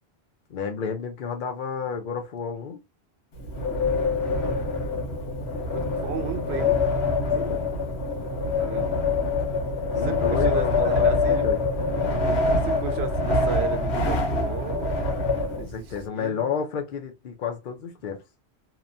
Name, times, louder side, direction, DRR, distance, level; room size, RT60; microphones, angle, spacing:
voice 1, 0.5-2.8 7.3-7.6 9.9-11.6 15.6-18.2, left 6 dB, 60° left, 0.6 m, -31 dB
Wind, 3.3-16.0, left 3 dB, 90° left, 1.1 m, -25 dB
voice 2, 5.7-6.8 8.5-9.0 9.9-11.5 12.2-15.0 15.6-16.5, right 6 dB, 80° right, 0.9 m, -34 dB
2.9 x 2.1 x 2.5 m
omnidirectional pair, 1.1 m